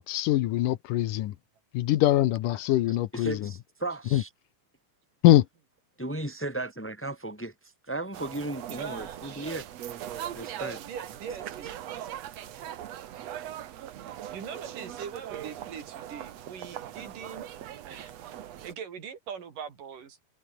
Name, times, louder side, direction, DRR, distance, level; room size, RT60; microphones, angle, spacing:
voice 1, 0.0-1.3 1.7-3.4 4.1-4.2 5.2-5.5, left 14 dB, 80° left, 2.6 m, -23 dB
voice 2, 2.9-4.3 6.0-7.5 7.9-9.7 10.3-10.8, right 2 dB, 5° left, 1.6 m, -35 dB
sound 1, 8.1-18.7, right 11 dB, 60° right, 2.2 m, -40 dB
voice 3, 8.7-9.5 10.6-11.8 14.3-17.4 17.9-18.1 18.6-20.2, right 7 dB, 80° right, 4.7 m, -41 dB
omnidirectional pair, 3.7 m